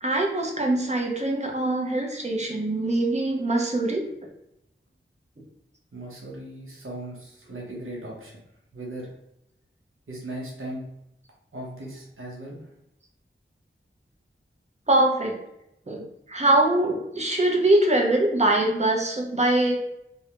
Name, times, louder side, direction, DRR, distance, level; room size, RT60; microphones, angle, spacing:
voice 1, 0.0-4.0 14.9-15.4 15.9-19.8, right 1 dB, 35° right, 1 dB, 0.6 m, -23 dB
voice 2, 5.9-8.4 8.7-9.1 10.1-10.9 11.5-12.7, right 1 dB, 80° right, -3 dB, 0.7 m, -37 dB
2.4 x 2.1 x 2.8 m, 0.82 s
wide cardioid pair, 50°, 21 cm